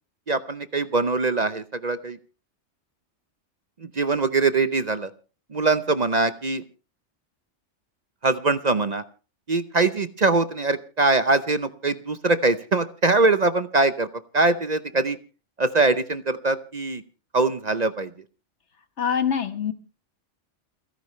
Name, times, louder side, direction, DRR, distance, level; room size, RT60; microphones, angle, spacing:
voice 1, 0.3-2.2 3.8-5.1 5.5-6.6 8.2-9.0 9.5-15.2 15.6-17.0 17.3-18.1, right 3 dB, 40° right, 0.8 m, -22 dB
voice 2, 19.0-19.7, left 7 dB, 70° left, 1.7 m, -24 dB
29.5 x 10.5 x 3.2 m
omnidirectional pair, 1.2 m